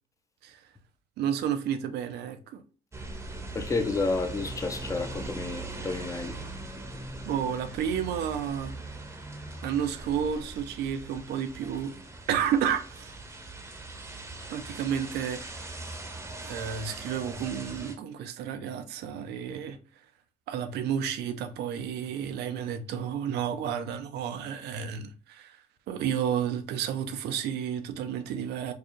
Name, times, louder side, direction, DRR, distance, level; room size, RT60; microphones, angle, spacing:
voice 1, 1.2-2.6 7.2-8.7 9.6-11.9 12.3-13.2 14.5-15.8 16.4-19.8 20.5-25.6 25.9-28.7, right 8 dB, 75° right, 0.6 m, -31 dB
sound 1, 2.9-18.0, right 2 dB, 15° right, 0.8 m, -40 dB
voice 2, 3.5-6.4, left 3 dB, 20° left, 0.6 m, -30 dB
4.7 x 2.4 x 3.0 m
cardioid pair, 110°, 17 cm